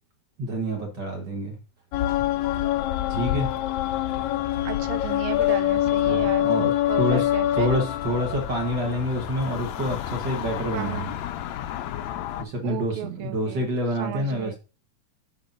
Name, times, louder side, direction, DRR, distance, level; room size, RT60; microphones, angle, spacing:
voice 1, 0.4-1.6 3.1-3.5 6.1-7.3 7.5-11.1 12.4-14.6, equal, 50° right, 1 dB, 1.5 m, -27 dB
sound 1, 1.9-12.4, left 13 dB, 80° left, 1.7 m, -26 dB
voice 2, 4.6-6.6 6.9-7.7 10.7-11.1 12.6-13.7 14.0-14.6, right 10 dB, 75° right, 10 dB, 1.7 m, -35 dB
11.5 x 4.8 x 2.6 m, 0.33 s
omnidirectional pair, 3.5 m